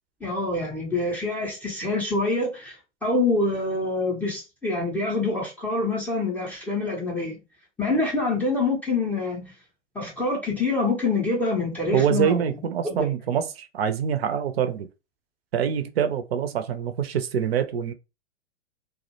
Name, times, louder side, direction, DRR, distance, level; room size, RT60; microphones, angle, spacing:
voice 1, 0.2-2.8 3.0-7.4 7.8-9.5 9.9-12.4, left 3 dB, 5° left, 0.4 m, -26 dB
voice 2, 11.9-14.9 15.5-17.9, right 8 dB, 60° right, 0.5 m, -25 dB
2.2 x 2.0 x 2.7 m
figure-of-eight pair, 105°, 35 cm